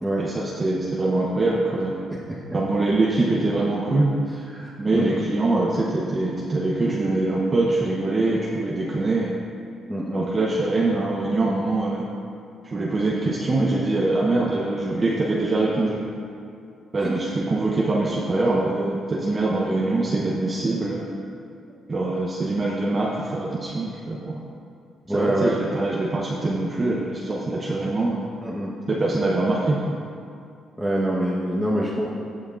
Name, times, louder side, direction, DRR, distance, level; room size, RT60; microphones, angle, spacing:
voice 1, 0.2-1.9 2.5-4.1 4.8-9.3 10.1-12.1 12.6-16.0 16.9-21.0 21.9-24.4 25.1-28.2 28.9-30.0, right 2 dB, 30° right, -3 dB, 0.8 m, -23 dB
voice 2, 4.5-5.2 9.9-10.2 17.0-17.2 25.1-25.6 28.4-28.7 30.8-32.1, right 1 dB, 5° right, -7 dB, 1.1 m, -25 dB
15.5 x 6.2 x 2.5 m, 2.5 s
cardioid pair, 90°, 0 cm